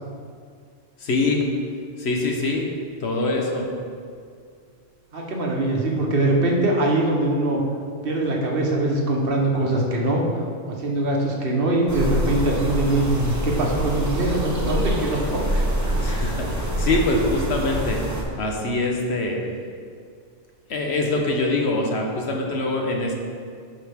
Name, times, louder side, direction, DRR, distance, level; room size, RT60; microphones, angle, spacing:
voice 1, 1.0-1.5 2.0-2.7 3.0-3.7 16.0-18.0 18.4-19.4 20.7-23.1, left 2 dB, 60° left, 1 dB, 1.2 m, -24 dB
voice 2, 5.1-7.6 8.0-15.6, right 2 dB, 50° right, -1 dB, 1.3 m, -22 dB
sound 1, 11.9-18.2, equal, 15° right, 1.0 m, -26 dB
11.0 x 4.8 x 3.5 m, 2.2 s
omnidirectional pair, 1.3 m